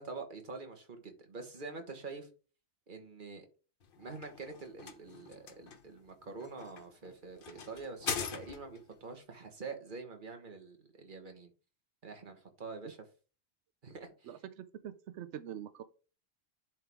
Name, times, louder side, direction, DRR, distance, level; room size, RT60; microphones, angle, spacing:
voice 1, 0.0-2.3 2.9-3.5 4.0-11.5 12.0-13.0 13.8-14.3, right 4 dB, 50° right, 1.5 m, -46 dB
sound 1, 3.8-8.9, left 6 dB, 55° left, 1.0 m, -42 dB
voice 2, 14.2-15.8, right 10 dB, 90° right, 0.9 m, -44 dB
10.5 x 4.5 x 3.5 m
omnidirectional pair, 1.1 m